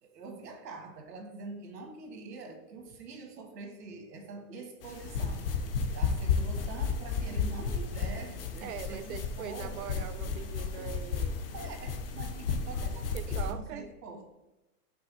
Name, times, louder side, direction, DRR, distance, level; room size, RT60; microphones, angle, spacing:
voice 1, 0.0-5.6 5.9-10.1 11.5-14.2, right 3 dB, 90° right, 4 dB, 1.8 m, -45 dB
sound 1, 4.8-13.5, left 5 dB, 40° left, 0.5 m, -33 dB
voice 2, 8.6-11.3 13.1-13.9, right 9 dB, 60° right, 12 dB, 0.6 m, -41 dB
5.8 x 3.3 x 5.5 m, 1.0 s
supercardioid pair, 175°, 47 cm